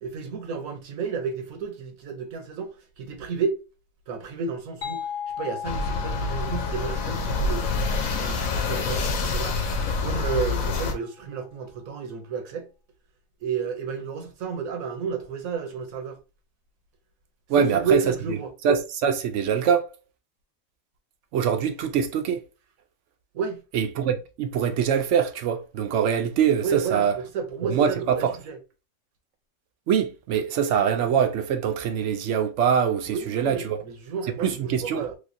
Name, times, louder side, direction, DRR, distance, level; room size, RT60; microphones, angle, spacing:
voice 1, 0.0-3.6 4.1-7.6 8.0-9.6 10.0-12.7 13.4-16.2 17.5-18.5 23.3-23.6 26.6-28.6 33.0-35.2, right 5 dB, 85° right, 1.3 m, -31 dB
sound 1, 4.8-10.3, left 8 dB, 55° left, 0.9 m, -38 dB
sound 2, 5.6-10.9, left 3 dB, 90° left, 1.2 m, -26 dB
voice 2, 17.5-18.0 18.6-19.9 21.3-22.4 23.7-27.2 27.6-28.3 29.9-33.8 34.4-35.1, right 7 dB, 70° right, 0.9 m, -23 dB
3.3 x 3.2 x 2.5 m
omnidirectional pair, 1.4 m